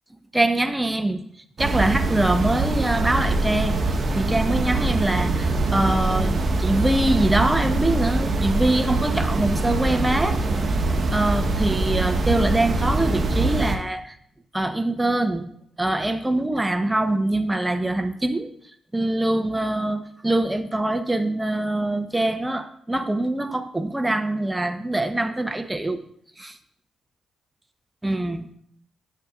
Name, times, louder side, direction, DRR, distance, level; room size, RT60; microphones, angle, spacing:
voice 1, 0.3-1.2 1.6-3.8 4.1-10.4 11.1-14.1 14.5-15.5 15.8-18.5 18.9-26.0 26.4-26.6 28.0-28.5, right 1 dB, 15° right, 8 dB, 0.9 m, -23 dB
sound 1, 1.6-13.7, right 2 dB, 50° right, 1.1 m, -23 dB
10.5 x 8.0 x 2.5 m, 0.66 s
hypercardioid pair, 45°, 0 cm